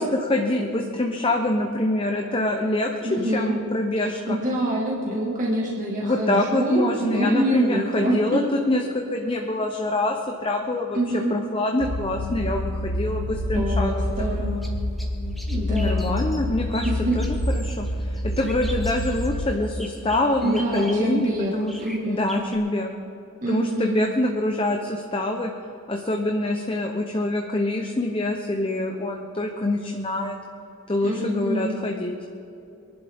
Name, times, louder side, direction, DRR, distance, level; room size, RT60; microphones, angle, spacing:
voice 1, 0.0-2.9 3.2-4.4 6.0-14.3 15.7-16.9 17.1-21.7 22.1-22.9 23.5-25.5 25.9-30.4 30.9-32.1, left 1 dB, 25° left, 2 dB, 0.8 m, -25 dB
voice 2, 3.0-3.6 4.0-8.4 10.9-11.3 13.5-14.7 15.5-16.1 16.8-17.1 20.4-22.3 23.4-24.0 31.0-31.8, right 1 dB, 40° right, -4 dB, 1.9 m, -26 dB
sound 1, 11.8-19.5, left 1 dB, 60° left, 0.9 m, -27 dB
sound 2, 13.9-22.6, equal, ahead, 1.4 m, -43 dB
23.0 x 11.5 x 3.6 m, 2.8 s
head